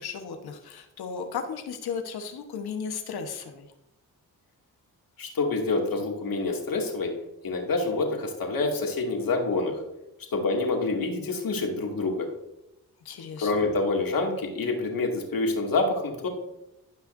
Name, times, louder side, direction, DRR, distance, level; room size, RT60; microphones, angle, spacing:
voice 1, 0.0-3.7 13.0-13.6, left 6 dB, 80° left, 5 dB, 1.3 m, -35 dB
voice 2, 5.2-7.1 7.4-9.8 10.3-12.3 13.4-16.3, left 3 dB, 65° left, 1 dB, 2.4 m, -27 dB
16.5 x 5.7 x 2.7 m, 0.90 s
cardioid pair, 60°, 37 cm